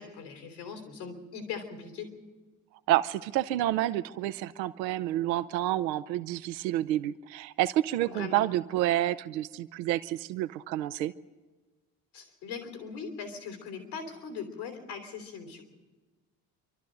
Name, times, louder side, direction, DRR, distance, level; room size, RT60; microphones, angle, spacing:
voice 1, 0.0-2.1 8.1-8.4 12.1-15.6, left 6 dB, 85° left, 4 dB, 3.5 m, -40 dB
voice 2, 2.9-11.1, right 14 dB, 85° right, 13 dB, 0.6 m, -29 dB
27.0 x 12.5 x 7.8 m, 1.3 s
hypercardioid pair, 50°, 50 cm